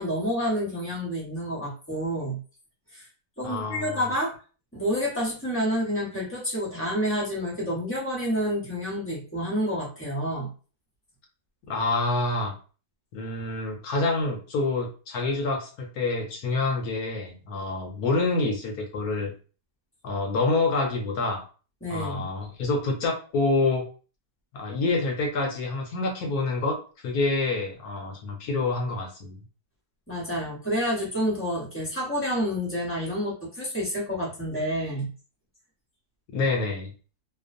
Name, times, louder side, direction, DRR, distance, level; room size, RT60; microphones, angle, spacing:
voice 1, 0.0-2.4 2.9-3.1 3.4-4.3 4.7-10.5 21.8-22.3 30.1-35.1, equal, 15° left, -5 dB, 0.5 m, -29 dB
voice 2, 3.4-4.1 11.7-12.5 13.1-19.3 20.0-21.4 21.9-23.9 24.5-26.8 27.0-29.4 36.3-36.9, left 3 dB, 70° left, 1 dB, 1.0 m, -27 dB
2.9 x 2.1 x 2.5 m, 0.37 s
omnidirectional pair, 1.9 m